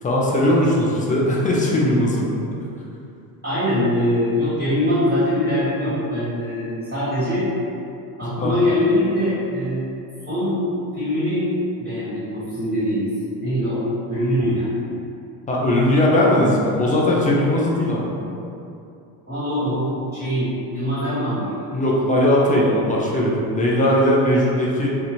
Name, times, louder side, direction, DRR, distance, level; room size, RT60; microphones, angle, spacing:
voice 1, 0.0-2.3 8.4-8.6 15.5-18.1 21.7-24.9, left 1 dB, 20° left, -4 dB, 0.4 m, -19 dB
voice 2, 3.4-7.5 8.2-9.8 10.3-10.6 10.9-11.5 11.8-13.1 13.4-13.8 14.1-14.7 19.3-21.6, left 1 dB, 20° right, -13 dB, 1.5 m, -22 dB
2.5 x 2.4 x 2.9 m, 2.6 s
hypercardioid pair, 80°, 47 cm